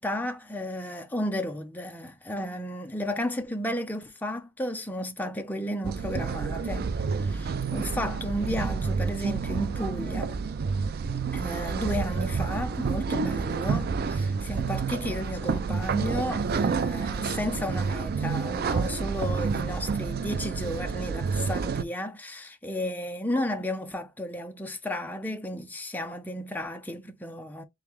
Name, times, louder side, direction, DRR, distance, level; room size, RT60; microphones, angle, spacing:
voice 1, 0.0-10.4 11.3-27.6, left 1 dB, 10° left, 0.6 m, -33 dB
sound 1, 5.8-21.8, right 5 dB, 50° right, 0.4 m, -29 dB
3.4 x 3.1 x 3.6 m
head